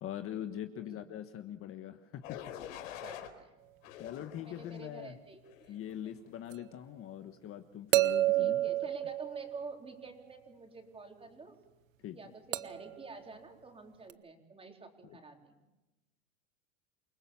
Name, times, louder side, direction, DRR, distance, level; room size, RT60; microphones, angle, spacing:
voice 1, 0.0-2.4 2.7-2.9 4.0-5.2 5.7-8.6 12.0-12.2 15.0-15.2, left 11 dB, 35° left, 8 dB, 1.4 m, -42 dB
voice 2, 0.7-1.1 3.0-3.5 4.2-5.8 6.0-6.3 8.3-11.6 12.1-15.6, right 4 dB, 15° right, 3 dB, 4.2 m, -48 dB
sound 1, 2.2-3.3 3.8-4.9 5.5-5.8, left 10 dB, 75° left, 4.1 m, -46 dB
sound 2, 6.5-6.6 7.9-10.0 12.5-13.0 14.1-14.2, right 15 dB, 85° right, 1.3 m, -30 dB
28.5 x 19.5 x 7.2 m, 1.0 s
supercardioid pair, 130°, 39 cm